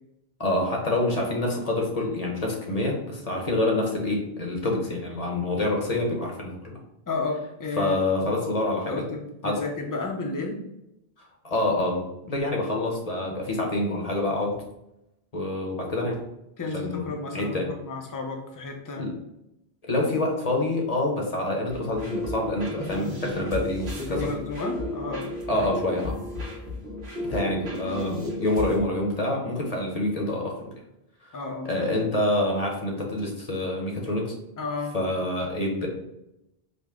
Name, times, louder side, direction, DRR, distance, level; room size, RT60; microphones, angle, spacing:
voice 1, 0.4-6.7 7.8-9.0 9.4-9.6 11.4-14.6 15.3-16.2 16.7-17.7 19.0-19.1 19.8-24.3 25.5-26.2 27.3-30.6 31.2-31.3 31.6-34.3 34.9-35.9, left 1 dB, 40° left, 0 dB, 0.8 m, -27 dB
voice 2, 7.1-8.0 8.9-10.6 16.6-19.1 24.0-25.7 31.3-31.9 34.6-35.0, left 3 dB, 25° left, 1 dB, 0.5 m, -32 dB
sound 1, 21.7-28.8, left 1 dB, 75° right, 1.3 m, -33 dB
5.1 x 2.1 x 3.6 m, 0.87 s
omnidirectional pair, 1.0 m